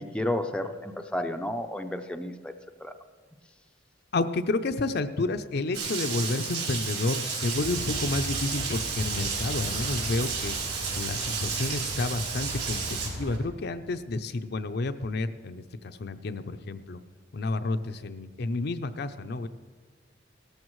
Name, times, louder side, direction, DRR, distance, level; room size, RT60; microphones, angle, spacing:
voice 1, 0.0-2.5 2.8-2.9, left 1 dB, 5° left, 5 dB, 0.5 m, -31 dB
voice 2, 4.1-10.6 11.0-17.0 17.3-19.5, left 2 dB, 60° left, 9 dB, 0.5 m, -30 dB
Rain, 5.7-13.1, right 5 dB, 60° right, 3.7 m, -32 dB
sound 1, 7.5-13.4, equal, 85° right, 4.7 m, -38 dB
17.0 x 13.5 x 3.1 m, 1.5 s
head